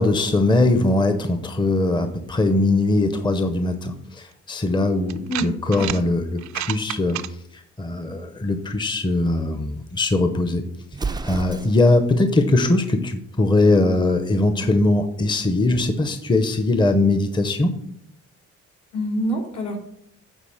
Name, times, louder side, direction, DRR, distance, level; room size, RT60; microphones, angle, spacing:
voice 1, 0.0-7.2 7.5-10.6 11.0-17.7, left 2 dB, 15° left, 8 dB, 0.8 m, -21 dB
sound 1, 4.3-4.4 5.1-6.0 6.4-7.3, right 13 dB, 70° right, 0.6 m, -30 dB
voice 2, 5.3-5.9 18.9-19.8, equal, 70° left, -1 dB, 3.0 m, -26 dB
Explosion, 10.9-12.1, right 4 dB, 15° right, 0.4 m, -30 dB
9.1 x 3.8 x 6.4 m, 0.71 s
cardioid pair, 90°, 30 cm